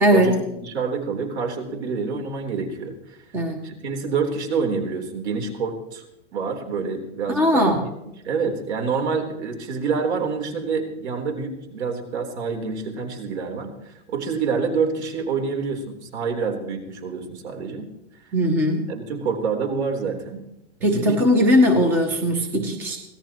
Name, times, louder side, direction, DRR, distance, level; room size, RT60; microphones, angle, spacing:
voice 1, 0.0-0.5 3.3-3.6 7.3-7.8 18.3-18.9 20.8-23.0, equal, 5° right, 4 dB, 0.7 m, -19 dB
voice 2, 0.6-3.2 3.6-6.1 6.3-7.7 8.2-17.9 18.9-20.4 20.8-21.2, right 5 dB, 65° right, 3 dB, 3.9 m, -27 dB
24.5 x 17.5 x 3.0 m, 0.86 s
supercardioid pair, 180°, 36 cm